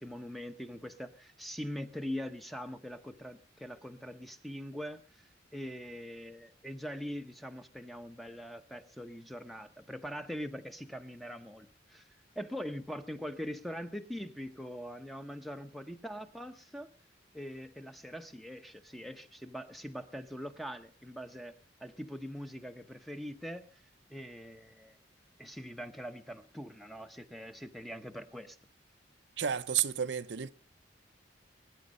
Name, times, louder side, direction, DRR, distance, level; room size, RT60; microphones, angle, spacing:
voice 1, 0.0-12.0 12.4-16.9 17.3-21.5 21.8-23.8 24.1-25.0 25.4-28.6, equal, ahead, 0.9 m, -42 dB
voice 2, 29.4-30.5, right 8 dB, 70° right, 0.6 m, -31 dB
21.0 x 9.8 x 5.4 m
head